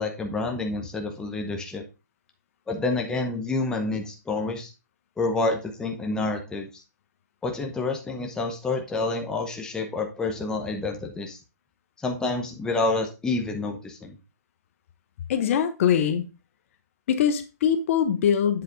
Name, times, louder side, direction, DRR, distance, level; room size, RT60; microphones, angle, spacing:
voice 1, 0.0-1.8 2.7-4.7 5.2-6.7 7.4-11.4 12.0-14.2, left 3 dB, 5° left, 2 dB, 0.8 m, -28 dB
voice 2, 15.3-16.2 17.1-18.6, left 8 dB, 45° left, 9 dB, 0.9 m, -22 dB
7.7 x 4.0 x 3.8 m, 0.29 s
hypercardioid pair, 140°, 10 cm